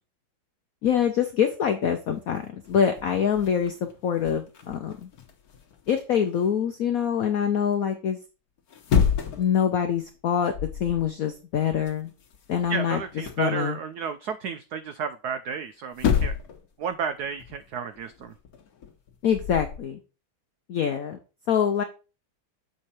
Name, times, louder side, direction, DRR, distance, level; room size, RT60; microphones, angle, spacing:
voice 1, 0.8-4.9 5.9-8.2 9.4-10.5 10.8-12.1 12.5-13.0 13.4-13.8 19.2-20.0 20.7-21.2 21.5-21.8, left 8 dB, 80° left, 7 dB, 0.7 m, -25 dB
sound 1, 0.9-1.2 1.8-1.9 2.2-6.5 8.6-9.6 9.9-10.2 10.5-11.1 11.3-13.5 15.5-15.6 15.9-16.7 16.9-19.8, left 7 dB, 55° left, 1.3 m, -30 dB
voice 2, 12.7-16.3 16.8-18.3, right 6 dB, 90° right, 11 dB, 0.8 m, -32 dB
7.5 x 4.7 x 4.2 m, 0.33 s
omnidirectional pair, 2.3 m